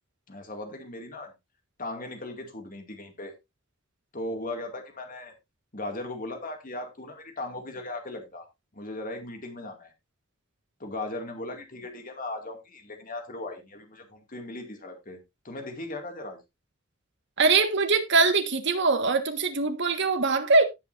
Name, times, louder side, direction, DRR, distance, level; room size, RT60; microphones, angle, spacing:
voice 1, 0.3-1.3 1.8-3.3 4.1-5.3 5.7-8.4 8.7-9.9 10.8-15.2 15.4-16.4, left 2 dB, 40° left, 2.3 m, -37 dB
voice 2, 17.4-20.6, right 4 dB, 55° right, 1.6 m, -22 dB
17.0 x 5.7 x 2.6 m
head